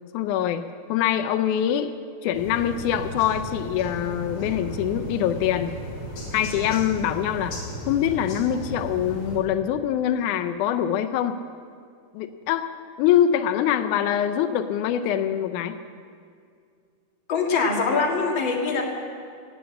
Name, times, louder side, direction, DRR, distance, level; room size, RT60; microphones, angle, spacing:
voice 1, 0.1-1.9 2.2-5.7 6.3-7.5 7.9-11.4 12.1-12.7 13.0-15.8, left 10 dB, 90° left, 8 dB, 2.1 m, -24 dB
sound 1, 2.3-9.4, right 1 dB, 75° left, 4.2 m, -35 dB
voice 2, 17.3-18.8, left 4 dB, 45° left, -1 dB, 2.3 m, -23 dB
17.5 x 7.1 x 8.7 m, 2.2 s
omnidirectional pair, 3.4 m